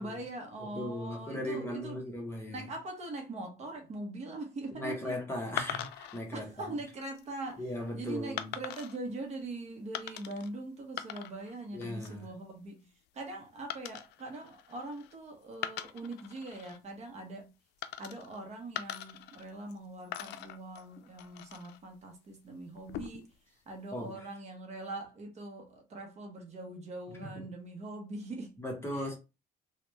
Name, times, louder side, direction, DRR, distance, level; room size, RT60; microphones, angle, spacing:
voice 1, 0.0-2.1 2.5-5.3 6.3-12.8 13.1-17.5 18.0-23.3 23.7-28.5 28.9-29.2, right 2 dB, 40° right, 1.0 m, -42 dB
voice 2, 0.6-2.6 4.8-6.5 7.6-8.5 11.7-12.3 23.9-24.3 27.2-27.4 28.6-29.2, left 1 dB, 15° left, 1.2 m, -38 dB
sound 1, 5.6-6.2 6.9-7.2 8.4-9.0 9.9-10.5 10.8-11.5 11.8-12.2 13.7-15.2 15.5-16.8 17.8-18.4 18.8-19.8 20.1-21.8 22.7-23.4, left 12 dB, 80° left, 0.4 m, -41 dB
3.4 x 2.4 x 3.0 m
cardioid pair, 110°, 17 cm